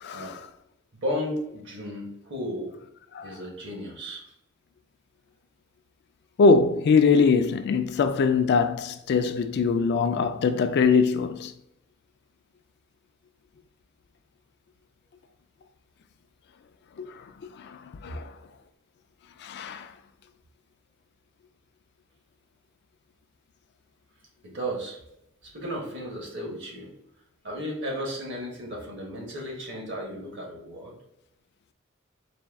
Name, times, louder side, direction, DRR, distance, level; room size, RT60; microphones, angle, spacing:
voice 1, 0.0-0.4 3.1-3.3 6.4-11.5 18.0-18.3 19.4-19.9, left 5 dB, 55° left, 0.3 m, -22 dB
voice 2, 1.0-2.7 3.2-4.2 18.0-18.1 24.4-25.0 25.4-26.9 27.4-30.9, equal, 60° right, 1.3 m, -34 dB
4.2 x 2.3 x 3.5 m
head